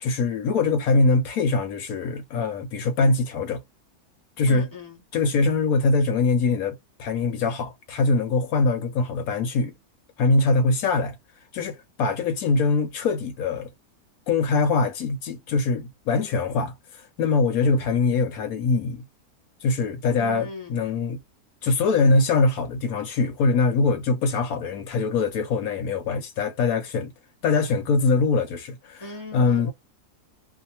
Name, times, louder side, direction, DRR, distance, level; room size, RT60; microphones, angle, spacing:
voice 1, 0.0-3.6 4.4-4.7 5.1-9.7 10.2-11.2 11.5-13.7 14.3-19.0 19.6-21.2 21.6-27.1 27.4-29.7, left 3 dB, 70° left, 1.0 m, -23 dB
voice 2, 4.5-5.0 20.2-20.8 29.0-29.7, left 2 dB, 15° right, 0.7 m, -38 dB
2.6 x 2.2 x 2.8 m
omnidirectional pair, 1.7 m